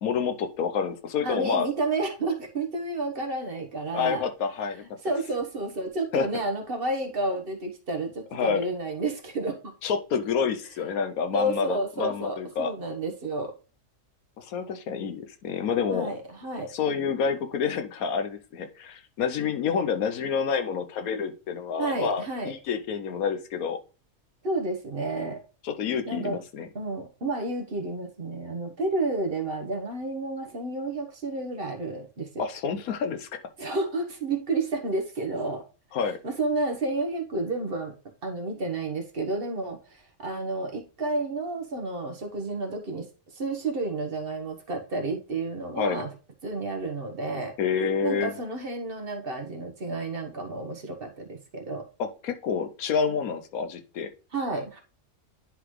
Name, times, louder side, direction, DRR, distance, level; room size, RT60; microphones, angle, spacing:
voice 1, 0.0-1.7 3.9-4.8 6.1-6.3 8.3-8.6 9.8-12.7 14.4-16.1 16.7-23.8 25.6-26.7 32.4-33.3 35.9-36.2 45.8-46.0 47.6-48.3 52.0-54.1, left 6 dB, 80° left, 7 dB, 1.2 m, -28 dB
voice 2, 1.2-4.2 5.0-9.7 11.3-13.5 15.9-16.7 21.8-22.5 24.4-25.4 26.1-26.4 26.7-32.5 33.6-35.6 36.2-37.9 38.2-43.1 43.3-46.1 46.4-47.5 48.0-51.8 54.3-54.8, right 2 dB, 40° right, 3 dB, 1.3 m, -31 dB
10.0 x 3.9 x 3.2 m, 0.34 s
omnidirectional pair, 1.5 m